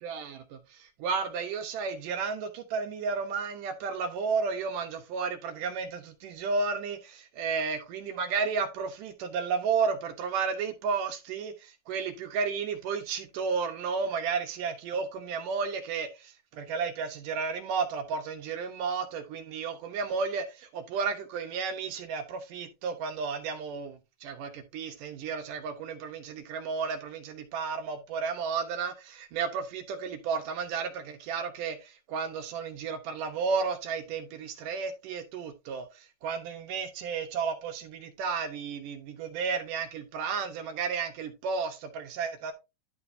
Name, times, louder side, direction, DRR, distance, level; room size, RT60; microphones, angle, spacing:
voice 1, 0.0-42.5, right 5 dB, 75° right, 2.6 m, -33 dB
11.5 x 5.8 x 2.7 m
omnidirectional pair, 3.9 m